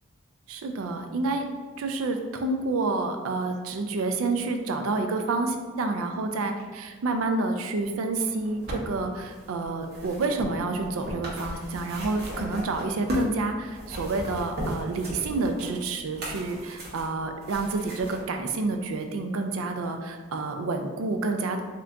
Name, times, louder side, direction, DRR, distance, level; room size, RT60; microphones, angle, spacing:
voice 1, 0.5-1.4 1.8-21.6, right 3 dB, 80° right, 6 dB, 0.4 m, -29 dB
sound 1, 8.2-13.4 13.7-18.2 19.0-19.1, equal, 50° right, 0.9 m, -36 dB
3.7 x 2.5 x 3.3 m, 1.4 s
head